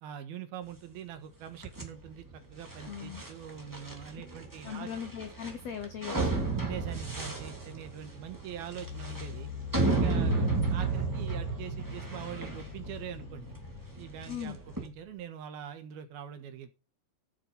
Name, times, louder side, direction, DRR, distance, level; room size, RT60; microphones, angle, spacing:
voice 1, 0.0-4.9 6.6-9.5 9.9-13.5 14.0-16.7, right 9 dB, 70° right, 3.1 m, -43 dB
sound 1, 1.6-14.9, right 3 dB, 5° right, 1.7 m, -33 dB
voice 2, 2.8-3.2 4.6-6.5 14.3-14.6, left 8 dB, 90° left, 1.5 m, -39 dB
sound 2, 8.7-15.2, left 8 dB, 60° left, 2.1 m, -44 dB
14.5 x 7.7 x 5.4 m
omnidirectional pair, 4.7 m